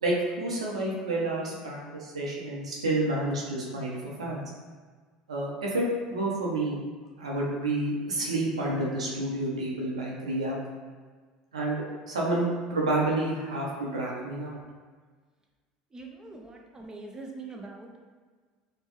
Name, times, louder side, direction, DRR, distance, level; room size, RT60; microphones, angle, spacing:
voice 1, 0.0-4.4 5.3-6.8 7.2-10.6 11.5-14.6, right 2 dB, 90° right, -3 dB, 0.7 m, -29 dB
voice 2, 15.9-18.1, right 3 dB, 20° right, 1 dB, 0.6 m, -43 dB
4.3 x 2.3 x 3.0 m, 1.5 s
hypercardioid pair, 75°, 3 cm